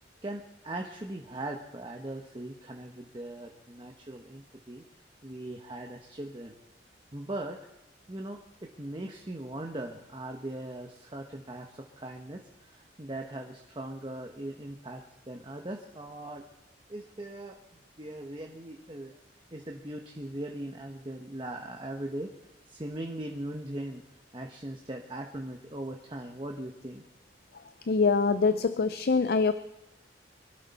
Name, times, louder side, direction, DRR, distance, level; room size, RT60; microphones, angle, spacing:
voice 1, 0.2-4.8 5.2-6.5 7.1-7.6 8.1-15.0 15.3-16.4 16.9-17.6 18.0-19.1 19.5-22.3 22.7-24.0 24.3-27.0, right 1 dB, 25° right, 2 dB, 1.1 m, -39 dB
voice 2, 27.9-29.5, left 4 dB, 55° left, 11 dB, 0.5 m, -24 dB
24.0 x 12.0 x 4.2 m, 0.96 s
head